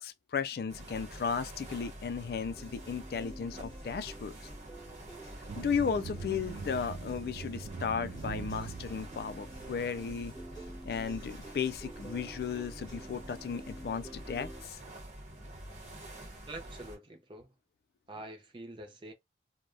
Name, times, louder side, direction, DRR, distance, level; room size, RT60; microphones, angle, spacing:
voice 1, 0.0-4.4 5.6-10.3 10.8-14.8, left 6 dB, 60° left, 0.3 m, -35 dB
sound 1, 0.7-17.0, right 1 dB, 45° right, 1.2 m, -47 dB
sound 2, 2.2-14.6, right 1 dB, 25° left, 1.3 m, -51 dB
sound 3, 5.5-10.0, right 5 dB, 90° right, 0.4 m, -43 dB
voice 2, 16.5-17.5 18.1-19.1, right 2 dB, 30° right, 0.5 m, -45 dB
3.2 x 2.2 x 2.5 m
head